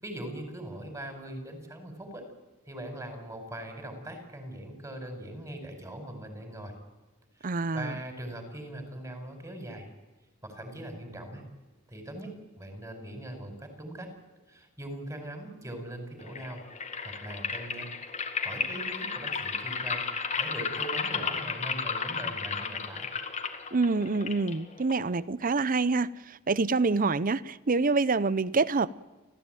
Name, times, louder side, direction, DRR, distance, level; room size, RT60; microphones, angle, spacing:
voice 1, 0.0-2.2 2.7-6.7 7.4-9.9 10.4-11.4 11.9-12.3 12.6-14.1 14.5-16.6 17.0-17.9 18.4-23.1, right 1 dB, 15° right, 5.1 m, -41 dB
voice 2, 7.4-7.9 23.7-28.9, right 3 dB, 40° right, 0.7 m, -26 dB
sound 1, 16.2-25.2, left 5 dB, 35° left, 1.9 m, -34 dB
29.5 x 14.5 x 9.2 m
head